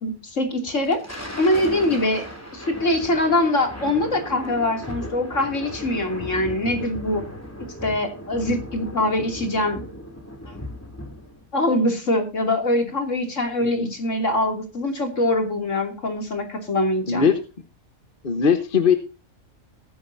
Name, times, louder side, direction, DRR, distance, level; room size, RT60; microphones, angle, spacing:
voice 1, 0.0-1.0 1.4-2.2 2.5-7.2 7.8-9.8 10.5-10.6 11.5-17.2, left 1 dB, 60° left, 4 dB, 3.2 m, -23 dB
Thunder, 0.7-11.4, equal, 10° left, 3.1 m, -36 dB
voice 2, 17.1-17.4 18.2-18.9, left 6 dB, 40° left, 8 dB, 1.3 m, -19 dB
20.0 x 10.5 x 2.7 m, 0.30 s
omnidirectional pair, 1.5 m